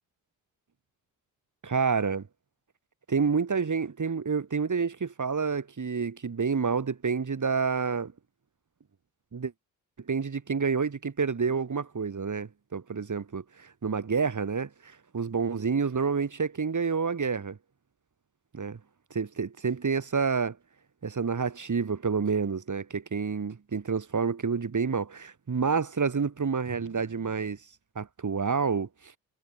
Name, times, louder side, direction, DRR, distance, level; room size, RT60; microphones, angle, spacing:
voice 1, 1.6-2.2 3.1-8.1 9.3-9.5 10.1-17.6 18.5-18.8 19.1-20.6 21.0-27.6 28.0-28.9, right 5 dB, 45° right, 7.4 m, -28 dB
hypercardioid pair, 45°, 43 cm